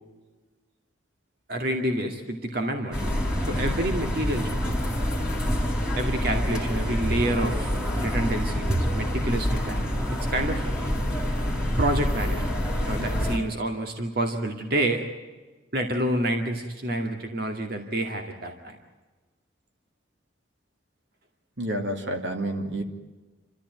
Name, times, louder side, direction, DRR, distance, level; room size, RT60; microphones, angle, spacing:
voice 1, 1.5-3.1 3.5-4.6 5.9-9.8 10.3-10.6 11.8-12.4 12.9-15.0 15.7-18.8, right 1 dB, 55° right, 4 dB, 2.2 m, -28 dB
sound 1, 2.9-13.4, equal, 5° right, 3.8 m, -27 dB
voice 2, 21.6-22.8, right 1 dB, 75° right, 5 dB, 2.8 m, -29 dB
28.5 x 14.0 x 9.3 m, 1.3 s
head